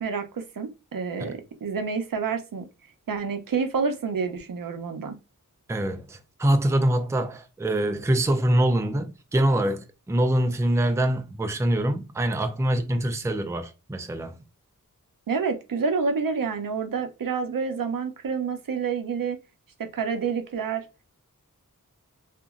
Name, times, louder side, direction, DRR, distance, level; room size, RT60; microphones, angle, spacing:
voice 1, 0.0-2.7 3.1-5.2 15.3-19.4 19.8-20.9, right 5 dB, 75° right, 0.6 m, -28 dB
voice 2, 5.7-14.4, right 1 dB, 10° right, 0.4 m, -24 dB
2.9 x 2.5 x 2.4 m
wide cardioid pair, 65°, 34 cm